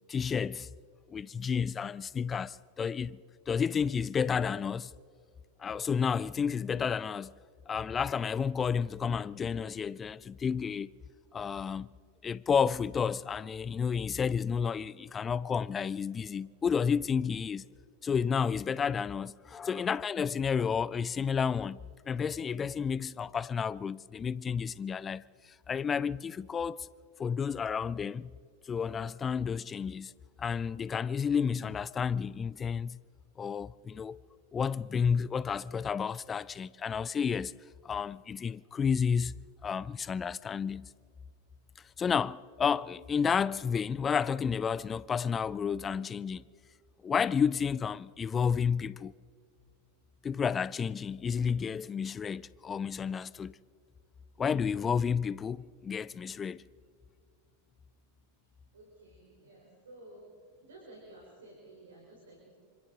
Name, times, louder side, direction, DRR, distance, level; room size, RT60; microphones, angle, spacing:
voice 1, 0.1-0.7 1.1-3.2 3.5-4.9 5.6-7.3 7.7-10.9 11.3-11.9 12.2-17.6 18.0-21.8 22.1-25.2 25.7-26.9 27.2-28.3 28.7-30.1 30.4-33.0 33.4-34.2 34.5-37.5 37.8-39.4 39.6-40.9 42.0-46.4 47.0-49.1 50.2-53.6 54.4-56.6, left 6 dB, 20° left, 0.4 m, -31 dB
voice 2, 58.7-60.3 60.6-62.5, right 2 dB, 65° right, 4.3 m, -53 dB
26.5 x 25.5 x 3.9 m
figure-of-eight pair, 90°, 0 cm